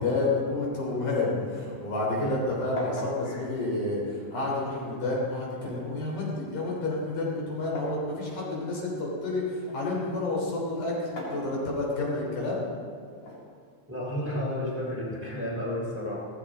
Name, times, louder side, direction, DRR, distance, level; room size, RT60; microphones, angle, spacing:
voice 1, 0.0-12.7, left 2 dB, 90° left, -4 dB, 5.0 m, -30 dB
sound 1, 1.1-2.4 2.8-4.7 5.6-8.1 8.6-9.9 10.9-12.1 13.2-14.2, left 1 dB, 70° left, 3.8 m, -41 dB
voice 2, 13.9-16.2, equal, 5° right, -5 dB, 3.0 m, -32 dB
17.0 x 14.5 x 3.7 m, 2.2 s
omnidirectional pair, 3.4 m